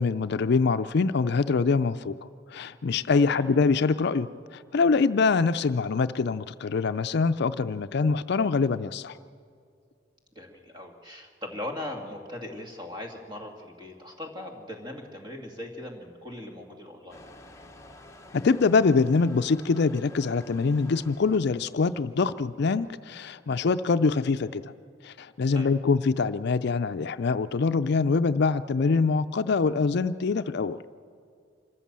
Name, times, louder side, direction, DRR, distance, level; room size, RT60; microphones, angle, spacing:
voice 1, 0.0-2.2 2.5-9.2 18.3-24.7 25.0-30.8, left 4 dB, 60° left, 12 dB, 0.4 m, -24 dB
voice 2, 10.4-17.2 25.5-25.7, left 1 dB, 25° right, 2 dB, 2.3 m, -39 dB
Motor vehicle (road) / Engine starting / Accelerating revving vroom, 17.1-23.0, left 2 dB, 15° left, 1.1 m, -51 dB
25.5 x 14.0 x 7.5 m, 2.2 s
head